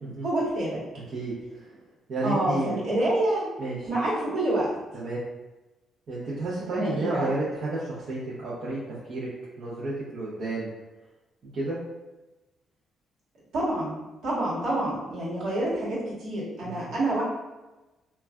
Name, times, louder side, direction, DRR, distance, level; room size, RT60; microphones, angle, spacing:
voice 1, 0.2-0.8 2.2-3.5 3.9-4.7 6.7-7.3 13.5-17.2, right 1 dB, 80° right, -8 dB, 1.2 m, -27 dB
voice 2, 1.1-1.8 2.1-2.8 3.6-3.9 4.9-5.2 6.1-8.8 9.1-9.3 9.6-10.7 11.5-11.8 16.6-16.9, right 2 dB, 55° right, -9 dB, 0.7 m, -31 dB
3.1 x 2.3 x 2.3 m, 1.1 s
cardioid pair, 90°, 0 cm